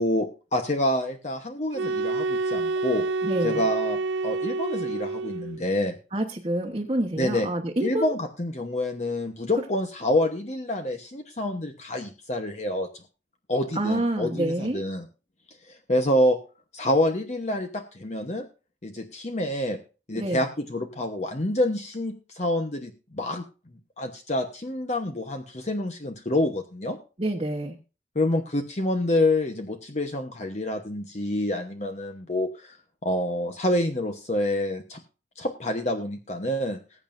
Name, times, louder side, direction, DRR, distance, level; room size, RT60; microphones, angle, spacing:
voice 1, 0.0-3.1 3.4-6.0 7.2-7.5 7.8-12.9 13.5-15.1 15.6-16.4 16.7-18.5 18.8-19.8 20.1-23.5 24.0-27.0 28.1-32.8 33.0-35.0 35.4-36.8, left 1 dB, 40° left, 5 dB, 1.0 m, -27 dB
sound 1, 1.7-5.6, right 3 dB, 85° right, 0.5 m, -28 dB
voice 2, 3.2-3.6 6.1-8.1 13.7-14.8 20.1-20.4 27.2-27.8, right 1 dB, 30° right, 0 dB, 1.2 m, -27 dB
20.5 x 8.9 x 2.6 m, 0.34 s
head